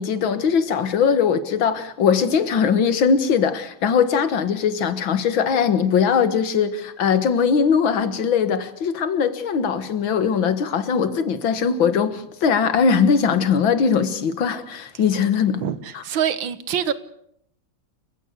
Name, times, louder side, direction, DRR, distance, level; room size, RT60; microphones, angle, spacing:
voice 1, 0.0-15.6 15.9-16.0, left 6 dB, 80° left, 2.3 m, -20 dB
voice 2, 15.6-16.9, right 9 dB, 75° right, 1.9 m, -25 dB
29.0 x 16.0 x 8.2 m
omnidirectional pair, 2.1 m